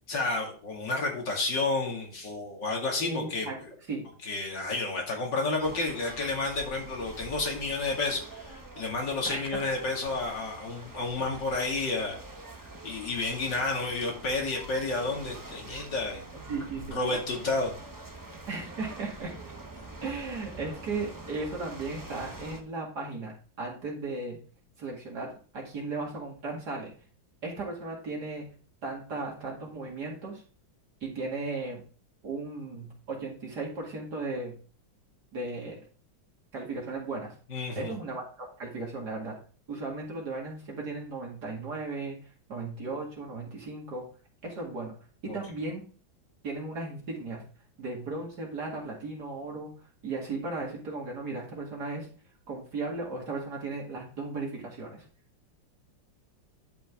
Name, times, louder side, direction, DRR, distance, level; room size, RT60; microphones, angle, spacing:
voice 1, 0.1-3.7 4.2-12.2 12.6-16.2 16.9-17.7 37.5-37.9 45.3-45.4, left 3 dB, 65° left, -1 dB, 2.9 m, -31 dB
voice 2, 3.0-3.5 3.9-4.0 9.2-9.5 16.5-17.2 18.5-19.3 20.0-24.4 24.8-25.3 25.5-26.9 27.4-28.4 28.8-30.4 31.0-31.8 32.2-34.5 35.3-35.8 36.5-37.3 37.8-39.3 39.7-42.2 42.5-44.1 44.4-44.9 45.3-45.8 46.4-47.4 47.8-49.7 50.0-52.1 52.5-55.0, right 3 dB, 55° right, -2 dB, 2.7 m, -36 dB
sound 1, 5.6-22.6, right 2 dB, 20° right, 0.6 m, -45 dB
11.5 x 5.1 x 3.6 m, 0.40 s
omnidirectional pair, 2.1 m